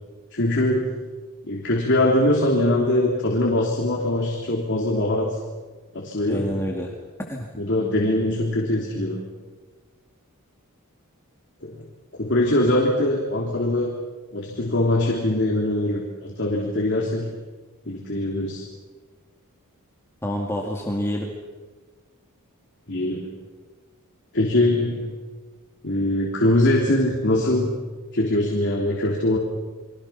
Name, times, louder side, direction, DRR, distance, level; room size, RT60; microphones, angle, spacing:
voice 1, 0.3-1.0 1.4-5.4 5.9-6.6 7.6-9.3 11.6-11.9 12.1-13.9 14.3-17.3 17.9-18.6 22.9-23.3 24.3-25.2 25.8-27.8 28.1-29.4, left 1 dB, 55° left, -1 dB, 3.3 m, -22 dB
voice 2, 6.3-6.9 7.3-7.5 20.2-21.3, equal, 10° left, -1 dB, 2.3 m, -27 dB
30.0 x 24.0 x 5.9 m, 1.3 s
head